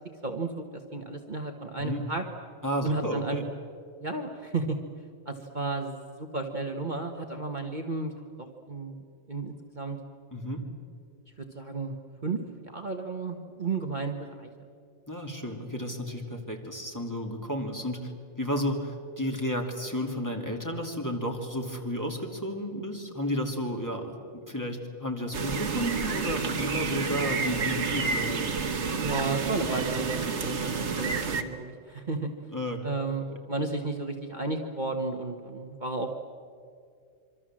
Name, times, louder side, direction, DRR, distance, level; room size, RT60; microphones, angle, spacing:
voice 1, 0.2-2.2 2.8-3.4 4.0-4.8 5.2-8.1 8.4-9.0 9.3-10.0 11.5-11.9 12.2-12.4 12.6-14.5 29.0-32.3 32.8-36.3, right 3 dB, 35° right, 3 dB, 1.5 m, -33 dB
voice 2, 2.6-3.5 10.3-10.6 15.1-18.1 18.4-28.4 32.5-32.8, equal, 15° left, 1 dB, 2.7 m, -32 dB
sound 1, 25.3-31.4, right 4 dB, 55° right, 1.7 m, -29 dB
26.0 x 25.0 x 7.6 m, 2.3 s
omnidirectional pair, 1.4 m